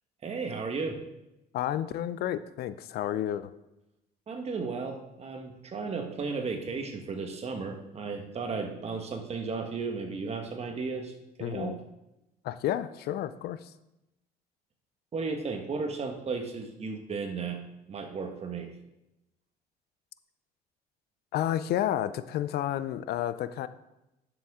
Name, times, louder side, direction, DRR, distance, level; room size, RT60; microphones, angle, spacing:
voice 1, 0.2-1.0 4.3-11.1 11.4-11.8 15.1-17.6 17.9-18.7, right 4 dB, 40° right, 4 dB, 1.4 m, -34 dB
voice 2, 1.5-3.5 11.4-11.8 12.4-13.6 21.3-23.7, left 11 dB, 70° left, 14 dB, 0.5 m, -31 dB
10.5 x 7.1 x 3.7 m, 0.92 s
cardioid pair, 110°, 17 cm